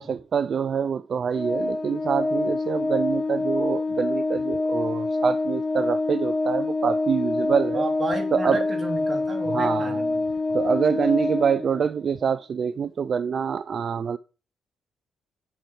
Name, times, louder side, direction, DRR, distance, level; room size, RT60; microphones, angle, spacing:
voice 1, 0.0-7.9 8.3-8.6 9.5-10.0 10.5-14.2, right 7 dB, 50° right, 0.3 m, -25 dB
Organ, 1.3-12.0, left 2 dB, 35° left, 1.4 m, -26 dB
voice 2, 7.7-10.3, right 3 dB, 25° right, 2.9 m, -32 dB
7.0 x 4.6 x 6.2 m
cardioid pair, 90°, 0 cm